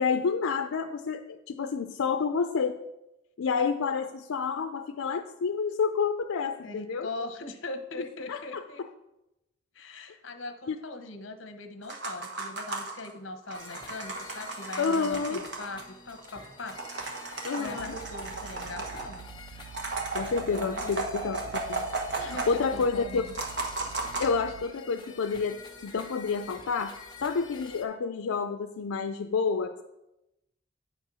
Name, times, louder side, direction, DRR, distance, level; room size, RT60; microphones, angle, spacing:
voice 1, 0.0-2.8 3.4-7.1 8.3-8.6 10.7-10.8 14.8-15.4 17.4-17.9 20.1-21.4 21.7-21.9 22.1-23.2 24.2-25.6 25.8-29.8, left 5 dB, 85° left, 7 dB, 0.4 m, -29 dB
voice 2, 6.6-8.8 9.7-16.8 17.5-19.3 20.5-21.3 22.1-23.3, left 2 dB, 65° left, 7 dB, 0.9 m, -41 dB
sound 1, 11.8-13.1 13.5-15.8 16.2-16.3 16.5-19.2 19.7-22.8 23.1-24.3, right 3 dB, 55° right, 1.3 m, -35 dB
sound 2, 13.5-27.8, left 4 dB, 20° left, 0.9 m, -48 dB
sound 3, 17.8-24.7, right 7 dB, 80° right, 0.4 m, -47 dB
9.2 x 4.5 x 6.1 m, 0.93 s
head